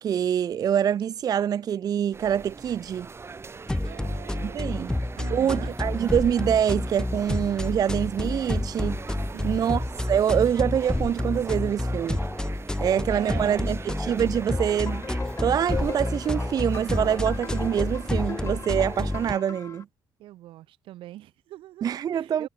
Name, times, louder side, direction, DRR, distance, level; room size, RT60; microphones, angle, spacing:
voice 1, 0.0-3.1 4.4-4.9 5.3-9.0 9.4-12.2 12.8-15.0 15.4-19.9 21.8-22.5, right 9 dB, 45° right, 0.4 m, -25 dB
sound 1, 2.1-19.4, right 4 dB, 30° right, 2.9 m, -41 dB
sound 2, 3.7-19.3, left 1 dB, 10° left, 0.7 m, -29 dB
voice 2, 3.8-5.8 9.2-9.7 12.8-13.6 20.2-22.5, right 15 dB, 80° right, 3.9 m, -43 dB
sound 3, 14.3-19.8, left 5 dB, 35° left, 7.0 m, -40 dB
cardioid pair, 95°, 9 cm